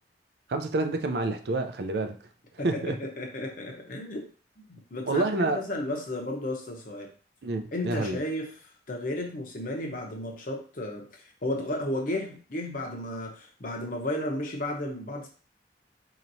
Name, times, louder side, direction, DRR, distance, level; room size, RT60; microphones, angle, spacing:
voice 1, 0.5-2.2 2.6-3.0 5.1-5.6 7.4-8.2, right 2 dB, 65° right, 0.4 m, -28 dB
voice 2, 3.0-4.2 4.7-7.1 7.7-8.5 8.9-11.1 11.4-15.3, left 1 dB, 50° left, 0.8 m, -33 dB
4.3 x 2.9 x 2.6 m
head